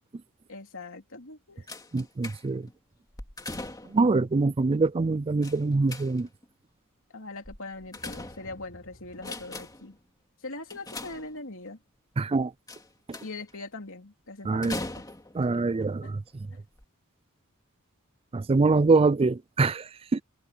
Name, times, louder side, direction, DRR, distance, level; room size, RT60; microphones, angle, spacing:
voice 1, 0.5-1.7 7.1-10.0 10.4-11.8 13.2-15.0 15.4-15.6 16.0-16.1, left 2 dB, 65° left, 3.4 m, -41 dB
sound 1, 1.7-2.7 3.1-4.1 5.4-6.4 7.5-8.7 9.1-9.9 10.7-11.7 12.7-13.5 14.6-15.5 16.3-16.4 16.8-16.9, left 2 dB, 15° left, 2.5 m, -40 dB
voice 2, 1.9-2.7 3.9-6.3 12.2-12.5 13.1-13.2 14.5-14.8 15.3-16.5 18.3-20.2, right 3 dB, 25° right, 0.4 m, -24 dB
sound 2, 7.8-10.1, equal, 45° left, 6.1 m, -54 dB
head